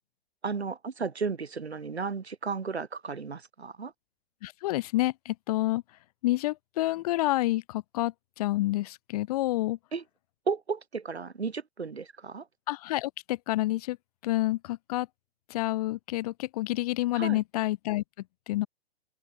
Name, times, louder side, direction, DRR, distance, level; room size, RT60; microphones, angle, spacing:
voice 1, 0.4-3.9 9.9-10.0 10.5-12.4 17.1-17.4, right 5 dB, 85° right, 1.1 m, -34 dB
voice 2, 4.4-5.8 6.2-9.8 12.7-14.0 14.2-15.1 15.5-18.0 18.5-18.7, left 17 dB, 35° left, 0.6 m, -28 dB
figure-of-eight pair, 115°, 32 cm